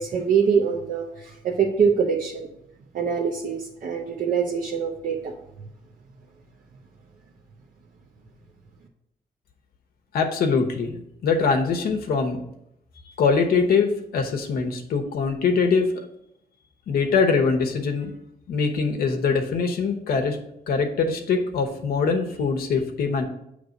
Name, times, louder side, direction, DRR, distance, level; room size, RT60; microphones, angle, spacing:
voice 1, 0.0-2.5 2.9-5.3, right 6 dB, 65° right, -2 dB, 0.8 m, -24 dB
voice 2, 10.1-10.9 11.2-12.4 13.2-15.9 16.9-18.1 18.5-20.4 20.7-23.2, left 5 dB, 85° left, 4 dB, 0.9 m, -23 dB
7.9 x 3.3 x 5.1 m, 0.79 s
cardioid pair, 125°, 15 cm